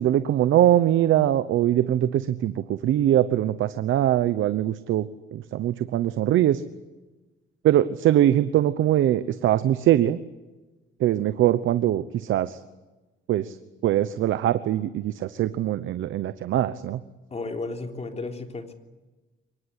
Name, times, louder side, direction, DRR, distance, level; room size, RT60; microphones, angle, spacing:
voice 1, 0.0-6.6 7.6-10.2 11.0-12.6 13.3-13.6 13.8-17.0, right 12 dB, 80° right, 13 dB, 1.0 m, -22 dB
voice 2, 17.3-18.7, left 3 dB, 35° left, 5 dB, 3.5 m, -33 dB
24.0 x 20.5 x 9.9 m, 1.2 s
cardioid pair, 90°, 20 cm